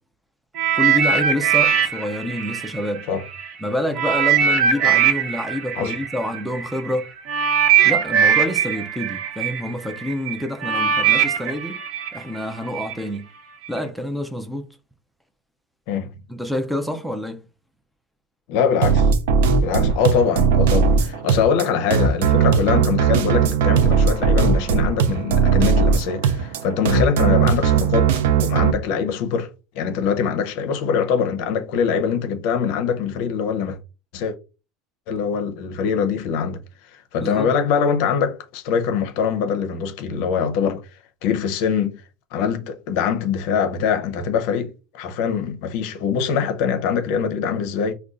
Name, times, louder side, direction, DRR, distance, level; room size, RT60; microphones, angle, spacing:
sound 1, 0.5-3.5 3.9-12.9 13.7-13.8, right 8 dB, 45° right, 0.7 m, -21 dB
voice 1, 0.7-3.1 3.6-7.1 7.8-11.8 12.1-13.3 13.7-14.6 16.3-17.4 37.2-37.5, left 1 dB, ahead, 0.3 m, -27 dB
voice 2, 18.5-19.1 19.6-28.1 28.4-29.5 29.7-33.8 34.1-34.4 35.1-36.6 37.1-40.8 41.2-42.0 42.3-47.9, left 6 dB, 55° left, 0.6 m, -23 dB
sound 2, 18.8-28.7, right 6 dB, 90° right, 0.4 m, -18 dB
5.1 x 2.2 x 2.4 m
supercardioid pair, 165°, 0 cm